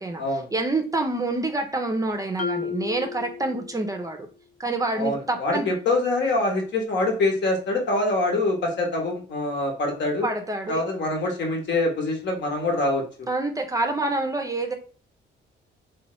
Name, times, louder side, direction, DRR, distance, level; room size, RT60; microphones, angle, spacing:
voice 1, 0.5-4.2 4.6-5.7 10.2-10.8 13.3-14.7, right 2 dB, 15° right, 4 dB, 0.4 m, -27 dB
Marimba xylophone, 2.4-4.1, left 5 dB, 40° left, 0.4 m, -33 dB
voice 2, 5.0-10.3 10.7-13.3, left 2 dB, 60° left, 1 dB, 1.0 m, -25 dB
3.0 x 2.2 x 2.9 m, 0.40 s
cardioid pair, 90°, 20 cm